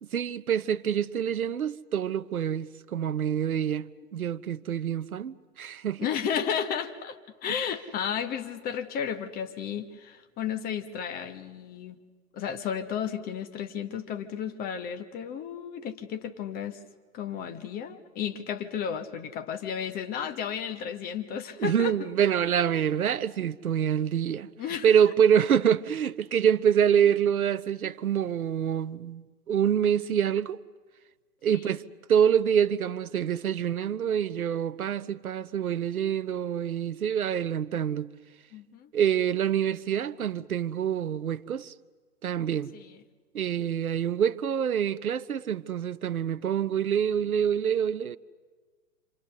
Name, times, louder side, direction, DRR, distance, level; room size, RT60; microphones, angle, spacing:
voice 1, 0.0-3.9 4.1-6.1 21.6-24.5 24.8-30.6 31.4-31.8 32.1-38.1 38.9-41.7 42.2-42.7 43.3-48.2, right 8 dB, 65° right, 0.9 m, -26 dB
voice 2, 6.0-12.0 12.3-16.8 17.1-22.1 24.6-24.9 31.5-31.6 38.5-38.9 42.7-42.9, left 8 dB, 20° left, 1.2 m, -33 dB
28.0 x 27.0 x 6.8 m
figure-of-eight pair, 110°, 46 cm